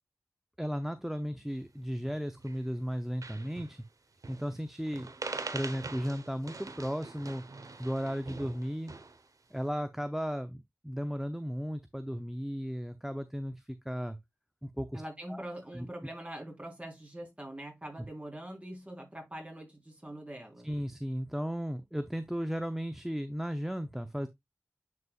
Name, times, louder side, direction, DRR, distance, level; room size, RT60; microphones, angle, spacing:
voice 1, 0.6-3.8 4.3-5.1 5.5-7.4 7.8-8.9 9.5-14.2 14.6-15.0 15.3-15.4 15.7-15.9 20.6-24.3, equal, 5° right, 0.6 m, -35 dB
sound 1, 2.0-2.6 2.9-3.0 3.2-3.8 4.2-4.6 4.9-9.3, right 3 dB, 65° right, 1.0 m, -43 dB
voice 2, 14.9-20.7, right 1 dB, 20° right, 3.9 m, -43 dB
9.4 x 4.8 x 2.4 m
wide cardioid pair, 55°, 6 cm